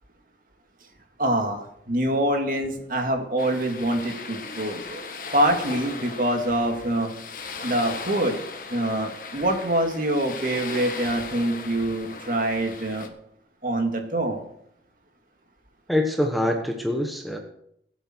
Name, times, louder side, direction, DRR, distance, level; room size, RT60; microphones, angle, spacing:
voice 1, 1.2-5.0 5.3-7.1 7.6-8.4 8.7-13.1 13.6-14.4, right 1 dB, 50° right, 3 dB, 2.4 m, -25 dB
sound 1, 3.4-13.1, left 4 dB, 50° left, 1.5 m, -38 dB
voice 2, 15.9-17.4, left 1 dB, ahead, 2 dB, 1.2 m, -24 dB
21.5 x 8.4 x 4.6 m, 0.72 s
head